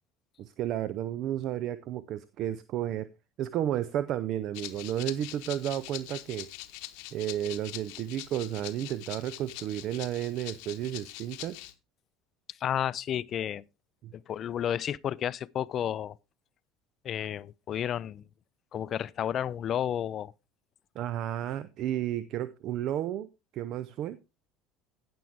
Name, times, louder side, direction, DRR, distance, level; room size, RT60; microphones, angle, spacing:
voice 1, 0.4-3.1 3.4-6.5 7.1-11.6 14.0-14.1 21.0-23.3 23.5-24.2, right 11 dB, 50° right, 0.5 m, -32 dB
Rattle (instrument), 4.5-11.7, left 17 dB, 60° left, 0.8 m, -43 dB
voice 2, 12.6-13.6 14.1-16.2 17.0-18.2 18.7-20.3, left 10 dB, 40° left, 0.4 m, -31 dB
16.0 x 6.1 x 3.4 m
figure-of-eight pair, 65°, 0 cm